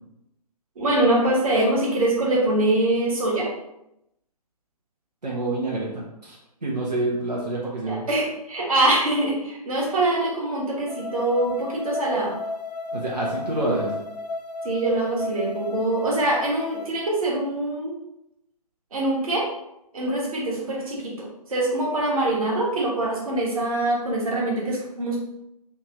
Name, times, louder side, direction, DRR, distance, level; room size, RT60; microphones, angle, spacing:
voice 1, 0.8-3.5 7.9-12.3 14.6-17.9 18.9-19.4 19.9-25.2, right 1 dB, 60° right, -3 dB, 1.3 m, -24 dB
voice 2, 5.2-6.4 6.6-8.0 12.9-13.9, right 2 dB, 80° right, -5 dB, 0.9 m, -27 dB
sound 1, 10.9-16.9, left 2 dB, 90° left, 0.5 m, -33 dB
3.3 x 3.1 x 2.7 m, 0.84 s
figure-of-eight pair, 130°, 21 cm